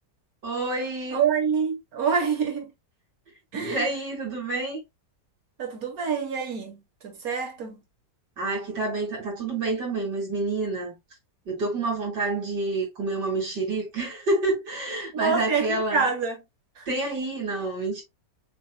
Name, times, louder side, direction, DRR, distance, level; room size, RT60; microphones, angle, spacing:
voice 1, 0.4-1.2 3.6-4.8 8.4-11.0 11.5-16.1 16.9-18.0, right 2 dB, 80° right, 3.1 m, -28 dB
voice 2, 1.1-2.7 3.5-3.9 5.6-7.8 15.1-16.4 16.8-16.9, right 6 dB, 60° right, 1.9 m, -26 dB
6.1 x 2.9 x 2.3 m
omnidirectional pair, 1.8 m